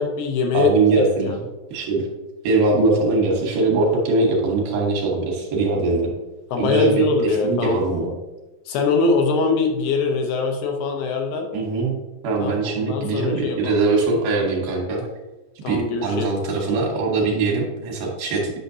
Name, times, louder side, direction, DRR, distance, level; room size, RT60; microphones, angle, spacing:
voice 1, 0.0-0.7 1.2-1.4 6.5-7.8 8.7-11.5 12.4-13.8 15.6-16.4, left 4 dB, 80° left, 2 dB, 2.5 m, -22 dB
voice 2, 0.5-1.3 1.7-2.1 2.4-6.1 6.6-8.1 11.5-12.0 12.2-15.0 15.7-18.5, right 3 dB, 70° right, -2 dB, 2.7 m, -21 dB
9.0 x 5.8 x 2.7 m, 1.1 s
omnidirectional pair, 4.8 m